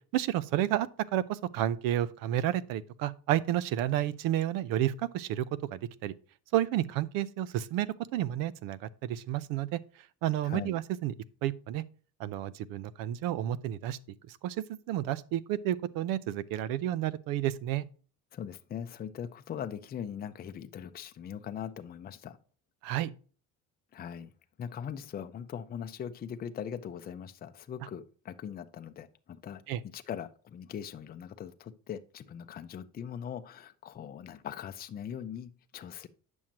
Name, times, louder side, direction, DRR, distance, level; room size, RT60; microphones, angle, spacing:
voice 1, 0.1-6.1 6.5-9.8 10.2-11.1 11.4-11.8 12.2-14.0 14.3-17.9 22.8-23.1 29.7-29.8, right 12 dB, 90° right, 0.6 m, -31 dB
voice 2, 10.4-10.8 18.3-22.4 23.9-24.3 24.6-29.6 29.9-36.1, left 8 dB, 30° left, 0.5 m, -41 dB
8.8 x 6.3 x 2.9 m
cardioid pair, 135°, 33 cm